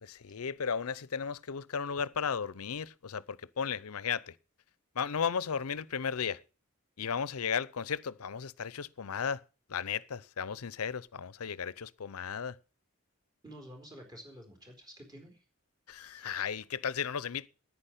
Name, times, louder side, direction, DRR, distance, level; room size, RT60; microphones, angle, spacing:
voice 1, 0.0-4.3 5.0-6.4 7.0-9.4 9.7-12.5 15.9-17.5, left 6 dB, 85° left, 0.6 m, -35 dB
voice 2, 13.4-15.4 16.1-16.4, equal, 20° right, 4.1 m, -50 dB
10.0 x 9.6 x 8.3 m
head